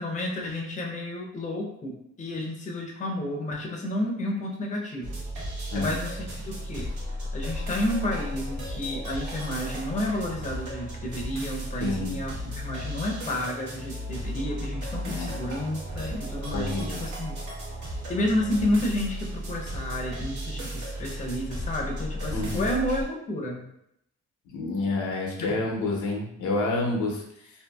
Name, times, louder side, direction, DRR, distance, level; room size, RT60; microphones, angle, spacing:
voice 1, 0.0-5.1 5.7-6.9 7.3-17.4 18.1-23.6 25.5-25.6, left 1 dB, 25° left, -1 dB, 0.6 m, -31 dB
sound 1, 5.0-23.0, equal, 75° right, 1.0 m, -35 dB
voice 2, 11.8-12.2 15.0-15.4 16.5-17.0 22.3-22.6 24.5-27.5, left 2 dB, 75° left, 0 dB, 0.7 m, -29 dB
2.6 x 2.5 x 2.2 m, 0.77 s
cardioid pair, 90°, 30 cm